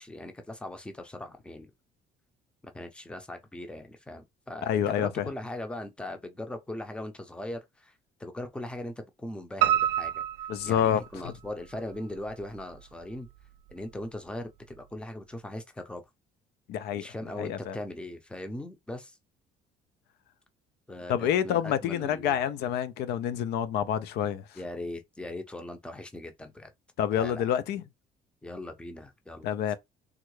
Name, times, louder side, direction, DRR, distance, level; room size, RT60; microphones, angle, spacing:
voice 1, 0.0-1.7 2.6-7.9 8.2-10.2 10.7-13.3 13.7-16.0 17.0-19.2 20.9-22.4 24.6-26.7 27.1-27.5 28.4-29.8, left 1 dB, 5° left, 0.5 m, -40 dB
voice 2, 4.6-5.3 10.5-11.3 16.7-17.0 17.4-17.8 21.1-24.4 27.0-27.8 29.4-29.8, left 9 dB, 75° left, 0.4 m, -28 dB
Piano, 9.6-11.5 11.9-12.8 13.1-13.2 13.7-13.8 14.0-14.1, right 11 dB, 90° right, 0.5 m, -28 dB
3.5 x 2.1 x 3.1 m
cardioid pair, 110°, 17 cm